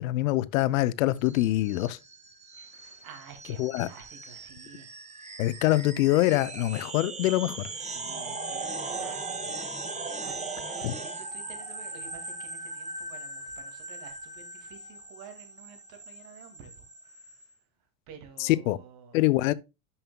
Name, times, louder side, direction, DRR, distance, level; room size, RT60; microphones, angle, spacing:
voice 1, 0.0-2.0 3.6-3.9 5.4-7.7 10.8-10.9 18.4-18.8 19.1-19.5, left 16 dB, 80° left, 0.6 m, -24 dB
sound 1, 1.2-17.5, right 3 dB, 15° right, 1.3 m, -39 dB
voice 2, 3.0-5.0 7.9-17.5 18.1-19.2, right 6 dB, 60° right, 2.3 m, -50 dB
11.0 x 5.6 x 2.2 m
hypercardioid pair, 90°, 40 cm